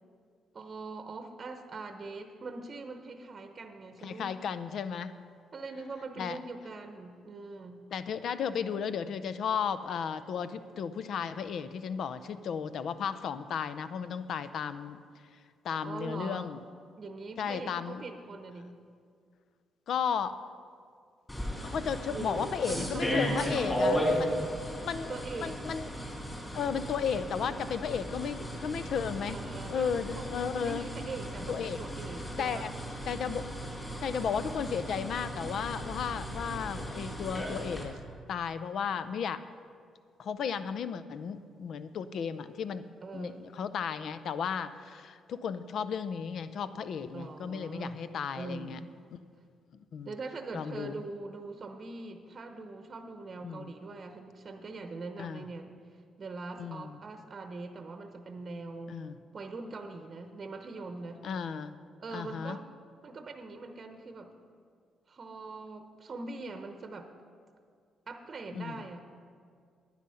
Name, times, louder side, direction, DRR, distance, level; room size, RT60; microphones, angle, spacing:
voice 1, 0.5-4.4 5.5-7.8 15.8-16.5 17.0-18.8 22.1-23.8 25.0-25.6 29.3-30.0 30.6-32.7 43.0-43.5 47.1-48.0 48.3-48.9 50.0-55.7 56.2-59.0 59.3-61.2 62.0-62.7 63.0-64.3 65.1-67.1 68.1-69.2, right 3 dB, 40° right, 6 dB, 0.8 m, -42 dB
voice 2, 4.0-5.2 6.2-6.4 7.9-15.0 15.6-16.6 17.4-18.0 19.9-20.4 21.6-24.5 24.7-25.9 26.5-29.4 29.7-30.9 31.5-31.8 32.4-32.7 33.1-33.5 34.0-38.0 38.3-39.4 40.2-42.8 43.1-48.8 49.9-50.1 50.5-51.0 53.4-53.7 55.2-55.4 56.6-57.0 58.9-59.2 61.2-61.8 62.1-62.6 68.5-68.8, left 7 dB, 65° left, 13 dB, 0.5 m, -34 dB
sound 1, 21.3-37.8, equal, 15° left, 3.0 m, -35 dB
10.0 x 9.8 x 5.6 m, 2.2 s
cardioid pair, 90°, 0 cm